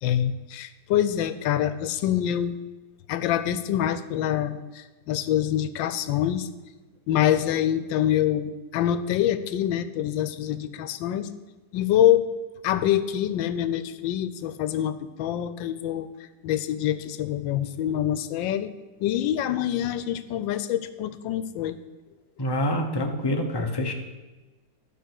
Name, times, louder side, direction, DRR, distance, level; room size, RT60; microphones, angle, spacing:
voice 1, 0.0-2.6 3.1-6.5 7.1-11.3 11.7-12.3 12.6-16.1 16.4-18.7 19.0-21.8, left 11 dB, 85° left, 13 dB, 1.3 m, -25 dB
voice 2, 22.4-23.9, left 1 dB, 35° left, 3 dB, 0.4 m, -26 dB
11.5 x 5.0 x 6.4 m, 1.2 s
omnidirectional pair, 2.0 m